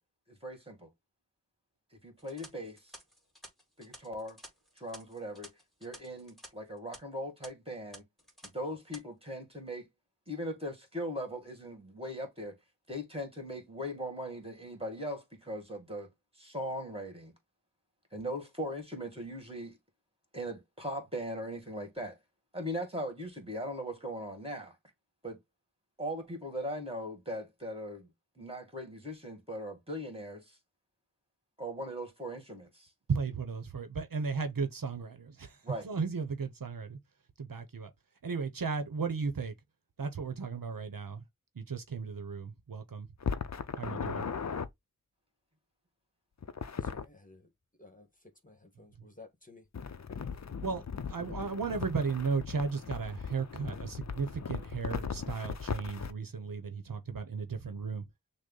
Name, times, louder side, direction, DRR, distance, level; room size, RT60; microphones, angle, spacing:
voice 1, 0.4-0.9 1.9-2.9 3.8-4.4 4.8-5.5 5.8-8.0 8.4-9.9 10.3-12.6 12.9-16.1 16.4-17.3 18.1-19.8 20.3-22.2 22.5-24.7 25.2-25.4 26.0-28.1 28.4-30.6 31.6-32.9 35.6-35.9, equal, 15° right, 2.1 m, -39 dB
sound 1, 2.2-6.5 6.8-7.0 7.4-7.5 7.9-8.5 8.8-9.0, equal, ahead, 2.2 m, -52 dB
voice 2, 33.1-35.5 35.8-37.0 37.4-37.9 38.2-39.5 40.0-41.2 41.6-43.1 43.8-44.3 50.6-58.0, right 5 dB, 75° right, 0.8 m, -35 dB
sound 2, 43.2-44.7 46.4-47.1 49.7-56.1, left 6 dB, 55° left, 0.5 m, -38 dB
voice 3, 46.8-47.5 47.8-49.7, left 3 dB, 25° left, 1.3 m, -55 dB
6.4 x 2.1 x 3.8 m
wide cardioid pair, 40°, 34 cm